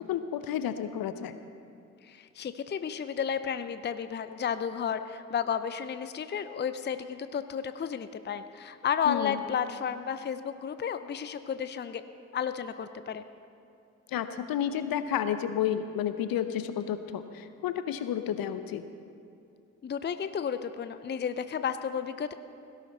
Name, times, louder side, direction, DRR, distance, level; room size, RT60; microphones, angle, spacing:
voice 1, 0.1-1.3 9.1-9.4 14.1-18.8, left 9 dB, 55° left, 11 dB, 0.9 m, -31 dB
voice 2, 2.1-12.0 12.3-13.2 19.8-22.3, left 7 dB, 25° left, 11 dB, 0.7 m, -32 dB
17.5 x 16.5 x 4.0 m, 2.5 s
figure-of-eight pair, 40°, 41 cm